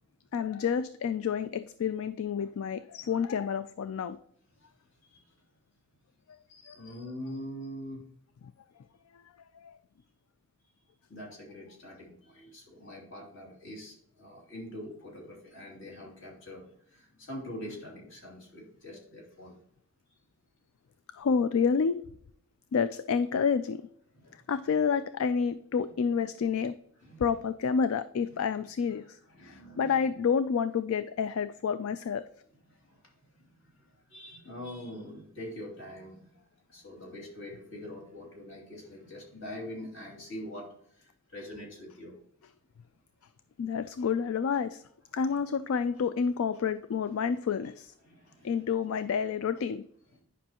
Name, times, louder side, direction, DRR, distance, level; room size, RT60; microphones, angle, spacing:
voice 1, 0.3-4.2 6.7-6.8 9.5-9.7 21.1-22.0 22.7-23.8 24.5-26.8 27.2-32.3 43.6-44.8 45.1-47.9 48.4-49.9, left 6 dB, 75° left, 0.3 m, -29 dB
voice 2, 6.5-8.0 11.1-19.6 24.1-24.4 27.0-27.2 28.9-30.0 32.7-33.0 33.4-33.7 34.1-36.3 36.7-40.7 40.9-42.2 48.0-48.7 50.1-50.2, left 1 dB, 60° left, 2.8 m, -44 dB
9.8 x 5.5 x 2.9 m
head